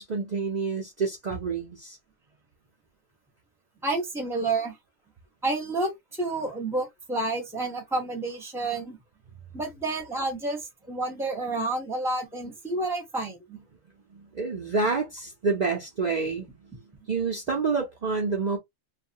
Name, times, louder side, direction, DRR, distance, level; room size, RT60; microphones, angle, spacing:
voice 1, 0.0-2.0 14.1-16.6 17.1-18.6, right 4 dB, 45° right, 0.7 m, -28 dB
voice 2, 3.8-4.8 5.4-9.0 9.5-13.6, right 2 dB, ahead, 0.8 m, -30 dB
2.7 x 2.4 x 2.8 m
omnidirectional pair, 1.3 m